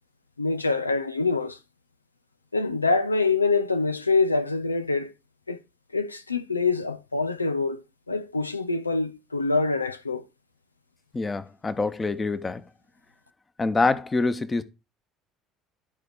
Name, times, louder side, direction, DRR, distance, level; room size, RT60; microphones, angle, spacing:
voice 1, 0.4-1.6 2.5-5.1 5.5-5.6 5.9-7.8 8.1-10.3, left 3 dB, 85° left, 0.7 m, -25 dB
voice 2, 11.1-12.6 13.6-14.6, left 3 dB, 20° left, 1.2 m, -25 dB
13.5 x 4.7 x 4.9 m
figure-of-eight pair, 60°, 0 cm